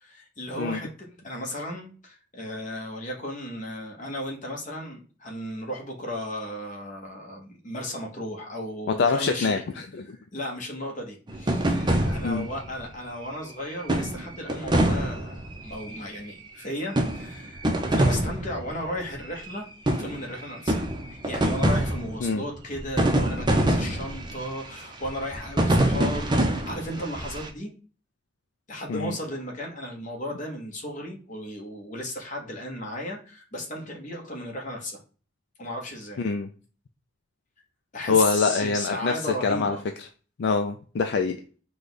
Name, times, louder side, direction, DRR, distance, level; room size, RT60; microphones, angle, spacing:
voice 1, 0.0-9.6 10.3-27.7 28.7-35.0 35.6-36.2 37.9-39.8, left 1 dB, 45° left, 0 dB, 1.1 m, -35 dB
voice 2, 8.9-10.2 11.7-12.5 22.2-22.4 28.9-29.1 36.2-36.5 38.1-40.1 40.4-41.4, left 4 dB, 65° left, 5 dB, 0.4 m, -25 dB
sound 1, 11.3-12.7 13.9-16.0 17.0-18.9 19.5-19.6 19.9-20.3 20.7-22.3 22.8-24.5 25.0-27.5, right 1 dB, 25° right, 0.6 m, -25 dB
4.9 x 2.3 x 3.9 m, 0.39 s
head